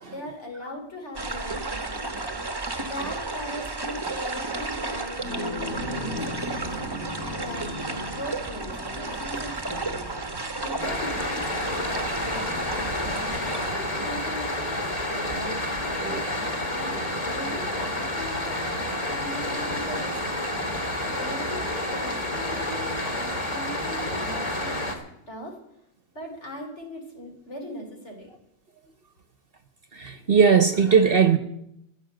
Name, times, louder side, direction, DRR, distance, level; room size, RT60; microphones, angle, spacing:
voice 1, 0.1-7.1 7.4-16.3 16.7-20.1 21.0-25.0 25.3-25.6 26.1-28.3, equal, 55° left, 4.0 m, -40 dB
sound 1, 1.1-13.7, right 3 dB, 20° right, 1.1 m, -33 dB
sound 2, 5.1-14.7, left 1 dB, 80° left, 3.2 m, -39 dB
sound 3, 10.8-24.9, left 1 dB, 25° left, 2.2 m, -29 dB
voice 2, 29.9-31.4, right 6 dB, 45° right, 1.1 m, -20 dB
14.5 x 9.2 x 7.8 m
omnidirectional pair, 1.4 m